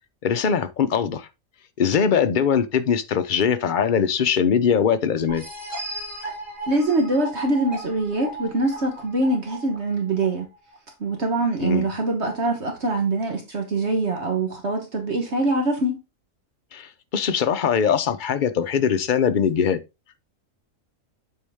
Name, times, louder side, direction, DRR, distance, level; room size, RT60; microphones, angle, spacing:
voice 1, 0.2-1.3 1.8-5.4 11.6-11.9 16.7-19.8, left 7 dB, 45° left, 0.7 m, -21 dB
sound 1, 5.3-10.8, right 1 dB, 10° right, 2.9 m, -36 dB
voice 2, 6.7-10.5 11.0-16.0, right 2 dB, 55° right, 1.4 m, -24 dB
8.3 x 4.6 x 3.5 m
omnidirectional pair, 1.4 m